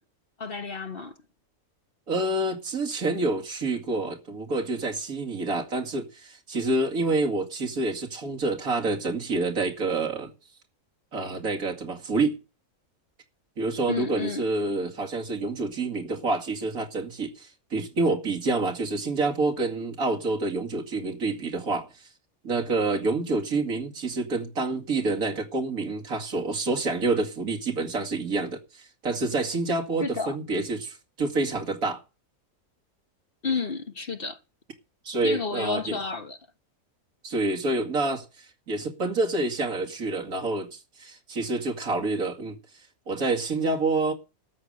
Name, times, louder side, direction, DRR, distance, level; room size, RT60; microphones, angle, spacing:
voice 1, 0.4-1.1 13.9-14.4 30.0-30.4 33.4-34.4 35.2-36.4, left 4 dB, 45° left, 1.5 m, -31 dB
voice 2, 2.1-10.3 11.1-12.4 13.6-22.1 22.4-32.0 35.0-36.0 37.2-42.6 43.1-44.1, right 3 dB, 75° right, 2.7 m, -28 dB
13.0 x 8.2 x 6.5 m
omnidirectional pair, 1.5 m